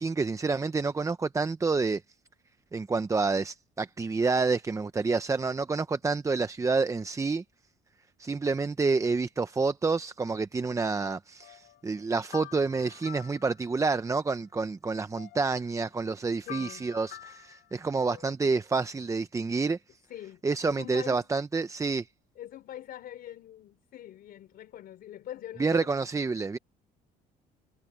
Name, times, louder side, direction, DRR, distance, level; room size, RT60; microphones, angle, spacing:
voice 1, 0.0-2.0 2.7-7.4 8.2-19.8 20.4-22.1 25.6-26.6, right 4 dB, 20° right, 0.7 m, -28 dB
sound 1, 11.4-14.2 14.6-14.7 14.9-18.3, left 15 dB, 80° left, 3.5 m, -49 dB
voice 2, 16.5-16.9 20.1-21.3 22.4-25.9, left 12 dB, 65° left, 3.5 m, -44 dB
cardioid pair, 110°, 17 cm